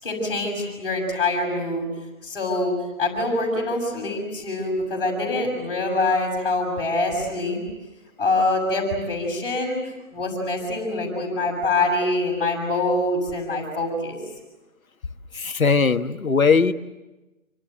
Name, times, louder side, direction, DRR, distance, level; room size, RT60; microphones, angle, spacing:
voice 1, 0.0-1.9 2.2-2.7 3.0-7.6 8.2-9.8 10.1-14.2, left 2 dB, 40° left, 1 dB, 6.8 m, -24 dB
voice 2, 15.3-16.7, left 5 dB, 80° left, 10 dB, 1.5 m, -19 dB
28.0 x 25.0 x 7.9 m, 1.1 s
figure-of-eight pair, 165°, 41 cm